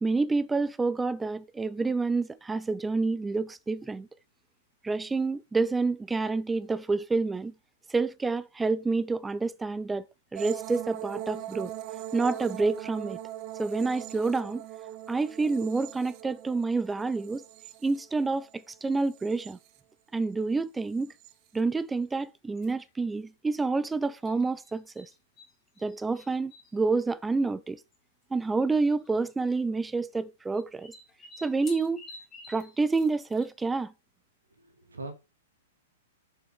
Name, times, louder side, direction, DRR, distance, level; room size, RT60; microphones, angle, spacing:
voice 1, 0.0-4.1 4.8-7.5 7.9-10.0 10.3-11.7 12.1-13.2 13.6-14.6 15.1-17.4 17.8-19.6 20.1-21.1 21.5-25.1 25.8-27.8 28.3-30.9 31.4-32.0 32.5-33.9, right 3 dB, 10° right, 0.5 m, -28 dB
sound 1, 10.4-18.5 18.9-19.8 21.0-21.3, right 12 dB, 40° right, 0.7 m, -41 dB
sound 2, 22.6-22.9 24.2-25.5 25.7-26.7 27.7-27.8 27.9-28.0 29.0-29.3 30.5-33.8, left 2 dB, 20° left, 2.8 m, -50 dB
voice 2, 34.5-35.1, right 2 dB, 75° right, 2.8 m, -41 dB
7.3 x 6.9 x 6.0 m
figure-of-eight pair, 105°, 0 cm